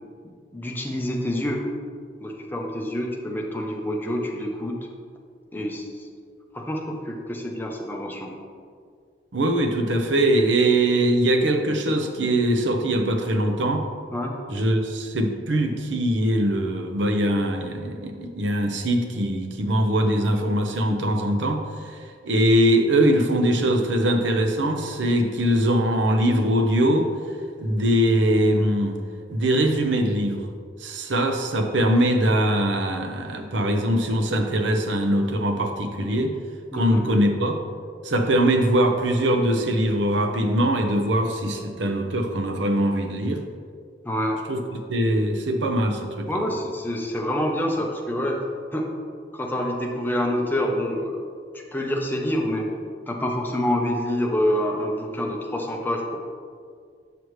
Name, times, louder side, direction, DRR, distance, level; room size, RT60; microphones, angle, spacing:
voice 1, 0.5-1.7 2.2-4.7 5.5-6.1 6.5-8.3 14.1-14.3 36.7-37.1 44.0-44.4 46.3-48.4 48.7-48.9 49.3-51.2 51.5-52.7 53.1-56.2, left 1 dB, 10° left, 0 dB, 0.7 m, -27 dB
voice 2, 9.3-13.8 14.5-21.6 21.8-22.0 22.2-27.1 27.6-29.0 29.3-30.5 30.8-36.3 36.7-37.5 38.0-43.4 44.5-44.6 44.9-46.4, right 1 dB, 85° right, 5 dB, 0.7 m, -22 dB
6.8 x 6.3 x 3.1 m, 2.1 s
head